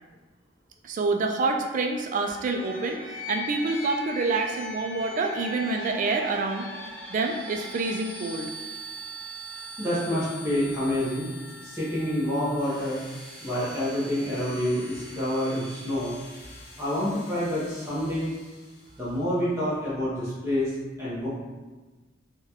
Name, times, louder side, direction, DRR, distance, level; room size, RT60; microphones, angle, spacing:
voice 1, 0.8-6.7 7.1-8.5, right 3 dB, 40° right, 3 dB, 0.3 m, -27 dB
sound 1, 2.2-19.0, equal, 50° left, 0.8 m, -41 dB
voice 2, 9.8-11.3 11.6-13.0 13.4-16.1 16.8-18.3 18.9-20.7 21.0-21.3, left 1 dB, 15° right, -10 dB, 0.7 m, -27 dB
3.7 x 2.3 x 2.9 m, 1.3 s
head